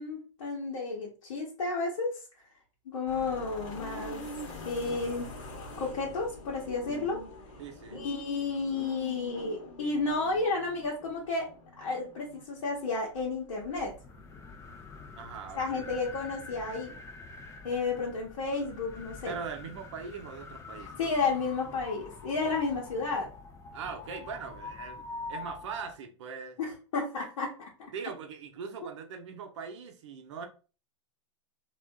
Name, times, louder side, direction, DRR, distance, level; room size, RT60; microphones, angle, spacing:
voice 1, 0.0-2.2 2.9-4.2 4.6-5.3 5.8-7.2 7.9-11.5 11.8-13.9 15.5-16.9 17.6-19.4 20.8-23.3 26.6-27.5 27.8-27.9, left 3 dB, 65° left, 1.0 m, -32 dB
sound 1, 3.1-19.3, left 1 dB, 45° left, 1.0 m, -46 dB
voice 2, 7.6-8.0 15.2-15.9 19.2-21.0 23.7-25.0 25.3-26.6 27.9-30.5, right 6 dB, 65° right, 0.7 m, -41 dB
sound 2, 13.8-26.0, left 4 dB, 15° left, 0.5 m, -46 dB
3.4 x 2.4 x 2.3 m
hypercardioid pair, 105°, 16 cm